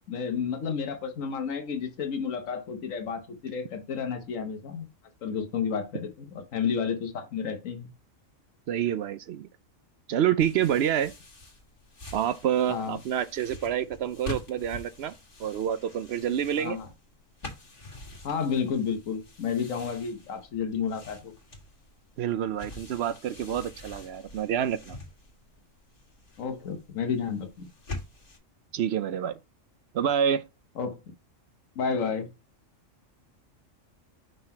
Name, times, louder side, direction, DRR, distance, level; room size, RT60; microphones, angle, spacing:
voice 1, 0.1-4.9 5.2-6.3 6.5-7.9 12.7-13.0 16.6-16.9 18.2-21.3 26.4-27.7 30.8-31.0 31.8-32.3, left 6 dB, 80° left, 1.4 m, -31 dB
voice 2, 8.7-9.5 10.1-11.1 12.1-15.1 15.4-16.8 22.2-25.0 28.7-29.4 29.9-30.4, right 9 dB, 65° right, 0.7 m, -27 dB
sound 1, 10.4-28.4, left 2 dB, 40° left, 2.0 m, -45 dB
5.7 x 4.0 x 4.3 m
omnidirectional pair, 1.3 m